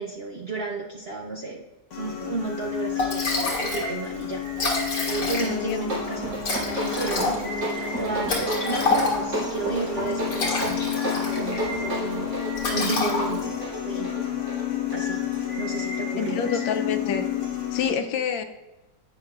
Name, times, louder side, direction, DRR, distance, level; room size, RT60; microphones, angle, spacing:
voice 1, 0.0-1.6 2.0-4.4 5.0-12.3 12.7-13.6 13.8-14.2 14.9-15.2 15.5-16.6, right 4 dB, 55° right, -1 dB, 0.7 m, -33 dB
sound 1, 1.9-17.9, left 9 dB, 45° left, 1.4 m, -31 dB
Liquid, 2.6-2.7 3.0-3.9 4.2-4.3 4.5-5.7 6.4-9.4 10.1-11.6 11.9-12.2 12.6-13.6, left 3 dB, 70° left, 2.5 m, -27 dB
voice 2, 5.5-5.8 13.1-13.2 16.2-17.2 17.7-18.4, left 7 dB, 90° left, 7 dB, 1.5 m, -27 dB
sound 2, 5.6-15.9, right 1 dB, 85° right, 4.3 m, -33 dB
11.0 x 8.7 x 2.5 m, 1.1 s
omnidirectional pair, 2.0 m